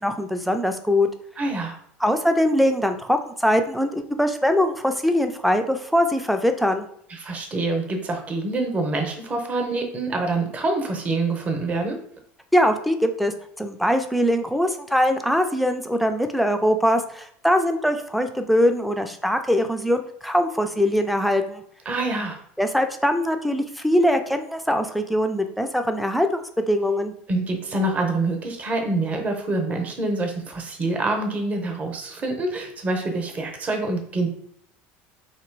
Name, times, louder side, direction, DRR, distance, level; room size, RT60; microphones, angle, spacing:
voice 1, 0.0-1.1 2.0-6.9 12.5-21.6 22.6-26.4 26.7-27.1, equal, ahead, 6 dB, 0.4 m, -22 dB
voice 2, 1.4-1.8 7.1-12.0 21.9-22.4 27.3-34.3, right 2 dB, 25° right, 3 dB, 0.8 m, -26 dB
3.2 x 2.9 x 4.5 m, 0.68 s
cardioid pair, 140°, 5 cm